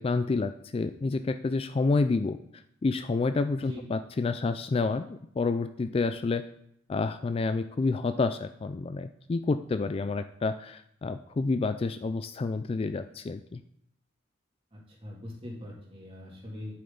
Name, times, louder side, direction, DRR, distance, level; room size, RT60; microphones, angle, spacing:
voice 1, 0.0-2.4 2.8-6.4 6.9-13.6, left 3 dB, 30° left, 10 dB, 0.3 m, -29 dB
voice 2, 14.7-16.8, left 1 dB, 30° right, -3 dB, 2.5 m, -42 dB
10.0 x 7.7 x 3.9 m, 0.72 s
head